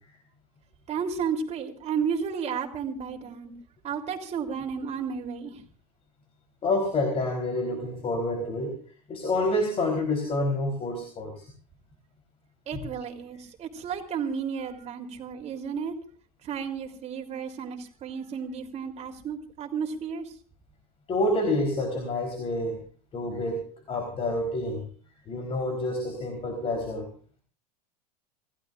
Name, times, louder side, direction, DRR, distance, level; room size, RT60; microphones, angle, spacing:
voice 1, 0.9-3.5 3.8-5.6 12.7-16.0 16.4-20.3, right 6 dB, 35° right, 3 dB, 3.4 m, -32 dB
voice 2, 6.6-8.7 9.1-11.5 21.1-22.8 23.1-24.8 25.3-27.1, left 1 dB, 30° left, 3 dB, 3.8 m, -28 dB
27.5 x 16.0 x 2.5 m, 0.40 s
hypercardioid pair, 90°, 19 cm